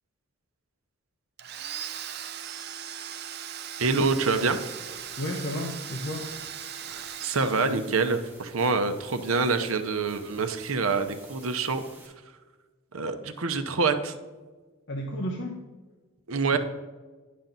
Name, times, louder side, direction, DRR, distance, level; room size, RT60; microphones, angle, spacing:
Domestic sounds home sounds, 1.4-8.2, right 9 dB, 45° right, 0.5 m, -39 dB
voice 1, 3.8-4.6 6.9-11.8 12.9-14.2 16.3-16.6, right 4 dB, 75° right, 8 dB, 0.8 m, -26 dB
sound 1, 4.1-12.1, right 1 dB, 10° right, 1.5 m, -52 dB
voice 2, 5.2-6.3 14.9-15.6 16.5-16.6, left 1 dB, 55° left, 1 dB, 0.8 m, -32 dB
10.5 x 5.8 x 3.9 m, 1.3 s
head